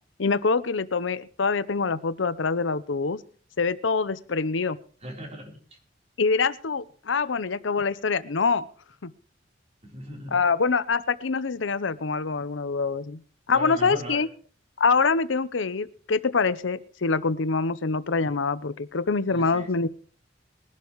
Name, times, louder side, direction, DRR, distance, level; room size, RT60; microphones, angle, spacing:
voice 1, 0.2-3.2 3.6-4.8 6.2-8.6 9.0-9.1 10.3-13.2 13.5-14.3 14.8-19.9, left 4 dB, 80° left, 15 dB, 0.7 m, -25 dB
voice 2, 5.0-5.6 9.8-10.5 13.5-14.2 19.3-19.7, equal, 35° right, 1 dB, 3.8 m, -38 dB
21.5 x 12.0 x 3.1 m, 0.42 s
head